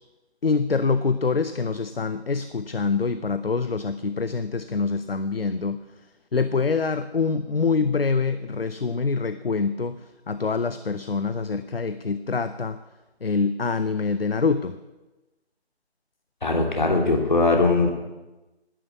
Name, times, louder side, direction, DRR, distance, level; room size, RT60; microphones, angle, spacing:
voice 1, 0.4-5.8 6.3-12.8 13.2-14.8, left 4 dB, 60° left, 12 dB, 0.7 m, -25 dB
voice 2, 16.4-17.9, left 3 dB, 45° left, 2 dB, 2.8 m, -20 dB
11.5 x 10.0 x 8.1 m, 1.1 s
figure-of-eight pair, 165°, 33 cm